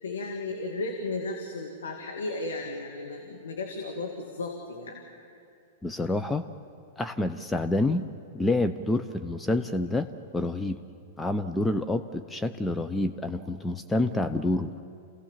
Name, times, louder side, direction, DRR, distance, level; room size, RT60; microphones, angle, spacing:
voice 1, 0.0-5.0, left 2 dB, 85° left, 2 dB, 2.2 m, -34 dB
voice 2, 5.8-6.4 7.0-8.1 8.3-10.8 11.2-14.7, left 2 dB, 10° left, 8 dB, 0.7 m, -28 dB
27.5 x 17.0 x 7.4 m, 2.5 s
hypercardioid pair, 110°, 0 cm